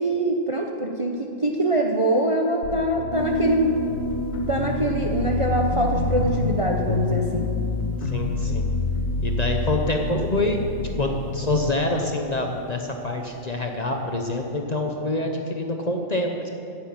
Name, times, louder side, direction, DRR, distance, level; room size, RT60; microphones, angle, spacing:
voice 1, 0.0-3.7 4.5-7.5, right 1 dB, 30° right, 1 dB, 0.7 m, -23 dB
sound 1, 2.6-11.7, left 4 dB, 80° left, 1.2 m, -28 dB
Piano, 3.1-13.8, right 2 dB, 45° right, 3.3 m, -35 dB
voice 2, 8.0-8.7 9.2-10.6 10.9-16.5, left 2 dB, 35° left, 2 dB, 0.9 m, -26 dB
10.0 x 7.7 x 8.7 m, 2.7 s
omnidirectional pair, 1.4 m